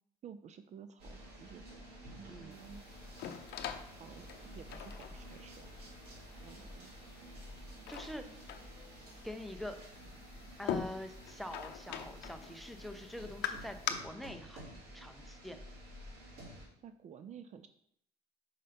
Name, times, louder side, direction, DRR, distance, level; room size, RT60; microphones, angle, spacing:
voice 1, 0.2-1.6 2.1-2.8 4.0-4.3 4.5-5.7 6.4-7.0 16.8-17.7, right 8 dB, 45° right, 10 dB, 0.4 m, -52 dB
sound 1, 1.0-16.7, equal, 70° right, 2.5 m, -51 dB
sound 2, 2.5-13.9, left 10 dB, 75° left, 0.6 m, -44 dB
voice 2, 7.9-8.4 9.2-9.8 10.6-15.6, left 1 dB, ahead, 7 dB, 0.6 m, -45 dB
5.6 x 5.2 x 3.4 m, 0.71 s
cardioid pair, 110°, 17 cm